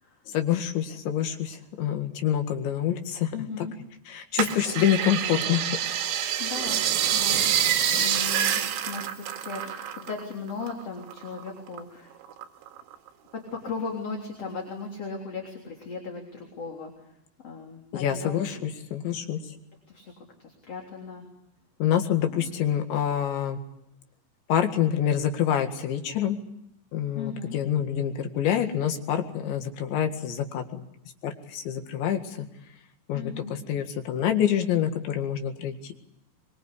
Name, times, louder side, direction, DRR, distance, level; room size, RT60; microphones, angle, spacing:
voice 1, 0.3-3.3 4.1-5.6 17.9-19.4 21.8-23.6 24.5-26.4 26.9-30.8 31.2-32.5 33.1-35.9, left 10 dB, 70° left, 6 dB, 4.0 m, -26 dB
voice 2, 3.3-3.7 6.4-6.8 7.1-7.5 8.0-12.1 13.3-17.0 17.4-18.7 19.9-21.3 22.3-22.6 27.1-27.6 33.1-33.5, left 4 dB, 35° left, 1 dB, 3.9 m, -37 dB
sound 1, 4.4-10.2 10.5-11.8 12.2-13.1 13.6-13.7, right 10 dB, 70° right, 3.9 m, -27 dB
24.0 x 23.5 x 8.4 m, 0.79 s
omnidirectional pair, 5.8 m